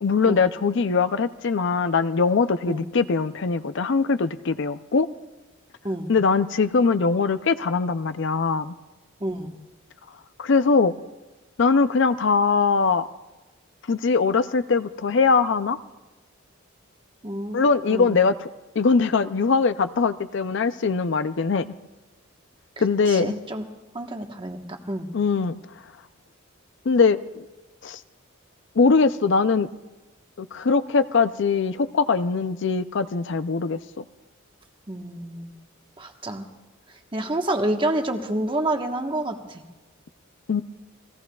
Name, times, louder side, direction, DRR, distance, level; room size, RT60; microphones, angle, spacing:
voice 1, 0.0-5.1 6.1-8.7 10.4-10.9 11.6-13.1 13.9-15.8 17.5-18.5 18.8-21.7 22.8-23.3 25.1-25.6 26.9-27.4 27.8-28.0 28.8-29.7 30.4-34.0 40.5-40.6, left 4 dB, 60° left, 12 dB, 0.5 m, -21 dB
voice 2, 9.2-9.5 17.2-18.2 23.1-23.7 23.9-25.1 34.9-35.6 36.0-36.5 37.1-39.6, right 1 dB, 25° right, 4 dB, 1.2 m, -28 dB
29.0 x 19.5 x 2.3 m, 1.1 s
head